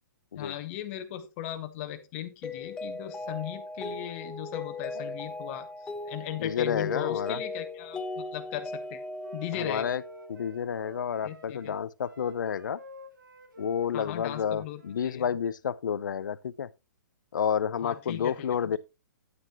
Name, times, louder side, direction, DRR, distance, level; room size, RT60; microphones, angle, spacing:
voice 1, 0.4-5.7 6.1-9.0 9.3-10.0 11.2-11.7 13.9-15.3 17.8-18.5, left 12 dB, 40° left, 1.2 m, -37 dB
Mallet percussion, 2.4-10.6, left 3 dB, 10° left, 0.6 m, -38 dB
voice 2, 6.4-7.4 9.5-10.0 10.3-12.8 13.6-16.7 17.3-18.8, left 8 dB, 75° left, 0.6 m, -30 dB
Wind instrument woodwind instrument, 8.8-15.2, equal, 80° right, 1.7 m, -50 dB
9.6 x 8.9 x 2.9 m
hypercardioid pair, 135°, 10 cm